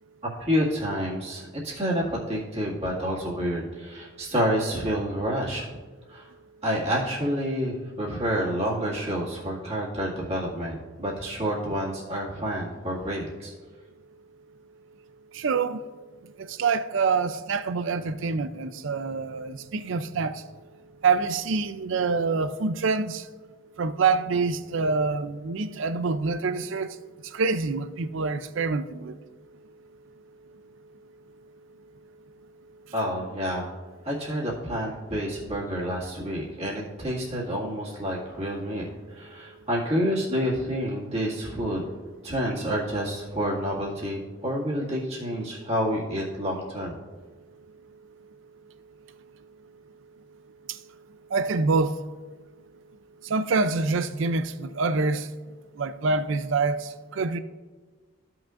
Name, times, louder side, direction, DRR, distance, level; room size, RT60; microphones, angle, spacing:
voice 1, 0.2-5.7 6.1-6.3 6.6-13.5 32.9-33.7 34.0-38.9 39.1-41.8 42.2-47.0, equal, 30° right, 1.9 m, -29 dB
voice 2, 15.3-15.8 16.4-20.4 21.0-23.3 23.8-27.0 27.2-29.2 50.7-50.8 51.3-52.0 53.2-55.3 55.8-57.4, right 4 dB, 65° right, 0.4 m, -26 dB
15.0 x 6.0 x 2.5 m
head